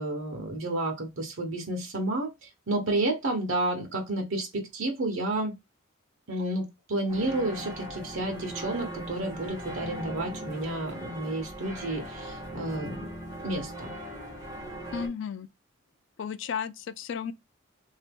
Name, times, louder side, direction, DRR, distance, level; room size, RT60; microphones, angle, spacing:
voice 1, 0.0-5.5 6.3-13.0 13.4-13.9, right 2 dB, 80° right, 1.0 m, -31 dB
sound 1, 7.1-15.1, right 1 dB, 15° right, 1.4 m, -39 dB
voice 2, 14.9-15.5 16.2-17.3, left 7 dB, 60° left, 0.3 m, -33 dB
2.9 x 2.7 x 3.4 m
head